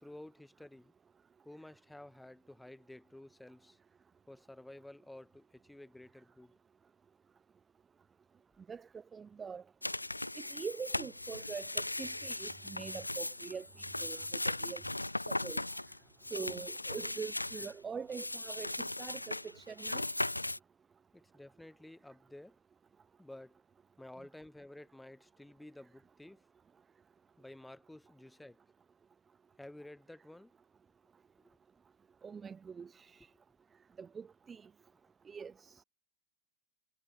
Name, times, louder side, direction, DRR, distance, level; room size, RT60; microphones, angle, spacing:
voice 1, 0.0-0.9 1.4-3.8 4.3-6.5 21.1-22.6 23.2-23.6 24.0-26.4 27.4-28.6 29.6-30.5 31.4-31.6 34.9-35.0, left 1 dB, 5° left, 1.3 m, -52 dB
voice 2, 8.7-9.6 10.4-13.7 14.0-14.2 14.6-14.8 15.3-15.6 16.3-18.7 19.0-20.0 32.2-33.1 34.0-34.7 35.3-35.7, right 6 dB, 20° right, 0.5 m, -44 dB
sound 1, 9.8-17.7 18.1-20.6, left 2 dB, 85° left, 0.3 m, -38 dB
figure-of-eight pair, 90°, 0 cm